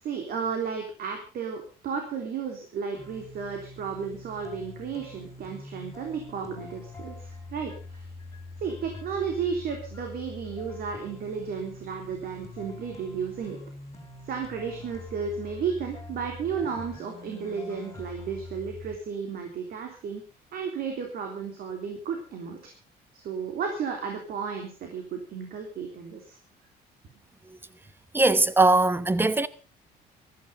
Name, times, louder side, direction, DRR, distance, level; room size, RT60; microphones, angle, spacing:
voice 1, 0.0-8.1 8.6-13.6 14.2-20.2 20.5-22.6 23.1-26.4, right 6 dB, 65° right, 3.5 m, -33 dB
sound 1, 2.9-18.9, left 2 dB, 20° left, 4.2 m, -44 dB
voice 2, 28.1-29.5, right 2 dB, 10° right, 1.0 m, -20 dB
15.0 x 14.0 x 5.4 m
cardioid pair, 110°, 17 cm